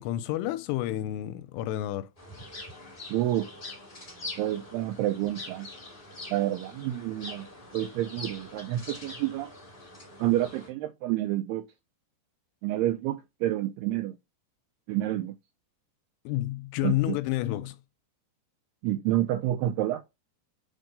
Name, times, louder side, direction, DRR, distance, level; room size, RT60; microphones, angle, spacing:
voice 1, 0.0-2.1 16.3-17.8, left 15 dB, 85° left, 2.6 m, -30 dB
sound 1, 2.2-10.7, left 2 dB, 25° left, 1.2 m, -44 dB
voice 2, 3.1-3.5 4.4-5.7 6.3-7.5 7.7-9.5 10.2-11.7 12.6-14.2 14.9-15.3 16.8-17.2 18.8-20.0, right 14 dB, 85° right, 2.3 m, -29 dB
6.4 x 4.5 x 5.3 m
omnidirectional pair, 5.0 m